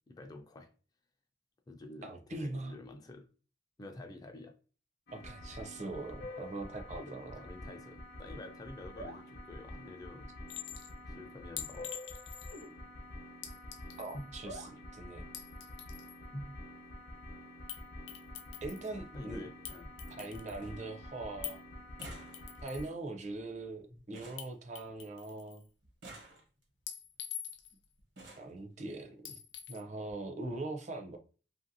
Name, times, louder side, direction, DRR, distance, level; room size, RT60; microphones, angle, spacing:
voice 1, 0.1-0.7 1.7-3.3 3.8-4.5 7.0-10.3 11.1-11.9 14.1-14.4 16.3-16.6 19.1-19.9 20.2-20.4 23.9-24.0, left 1 dB, 20° left, 0.3 m, -48 dB
voice 2, 2.0-2.7 5.1-7.4 14.0-15.3 18.6-19.5 20.2-21.6 22.6-25.6 28.4-29.4 29.7-31.2, right 2 dB, 40° right, 0.5 m, -41 dB
sound 1, 5.1-22.9, left 1 dB, 55° left, 0.8 m, -48 dB
Chink clink, 10.5-10.9 11.6-12.7 13.4-14.2 15.2-16.2 17.7-17.8 18.1-18.9 19.6-20.6 21.4-21.6 22.0-22.9 24.4-24.5 24.8-25.6 26.9-27.8 29.2-29.8, left 10 dB, 85° left, 0.5 m, -45 dB
sound 2, 16.8-17.0 18.2-18.3 18.5-18.6 18.9-19.1 19.5-20.0 20.3-20.4 20.6-21.0 21.3-25.3 25.8-26.8 27.6-27.7 28.0-28.6 29.5-29.6 30.0-30.1 30.4-30.5, right 2 dB, 80° right, 1.1 m, -53 dB
2.8 x 2.6 x 2.6 m
head